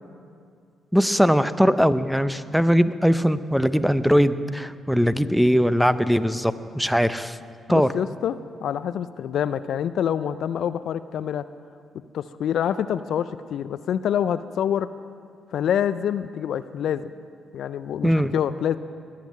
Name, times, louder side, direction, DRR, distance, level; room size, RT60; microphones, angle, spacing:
voice 1, 0.9-7.4 7.7-7.9 18.0-18.3, equal, ahead, 13 dB, 0.7 m, -20 dB
voice 2, 7.7-11.5 12.1-14.9 15.5-17.1 17.5-18.8, left 9 dB, 70° left, 14 dB, 0.3 m, -26 dB
20.5 x 7.5 x 7.4 m, 2.3 s
hypercardioid pair, 40°, 0 cm